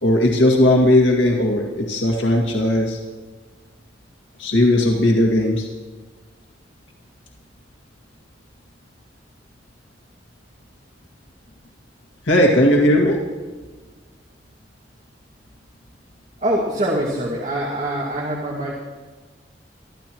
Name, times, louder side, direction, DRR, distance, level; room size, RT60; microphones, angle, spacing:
voice 1, 0.0-3.0 4.4-5.7 12.3-13.2, left 1 dB, 85° left, 0 dB, 2.0 m, -17 dB
voice 2, 16.4-18.8, right 1 dB, 40° right, -2 dB, 2.1 m, -24 dB
24.5 x 13.5 x 3.1 m, 1.4 s
head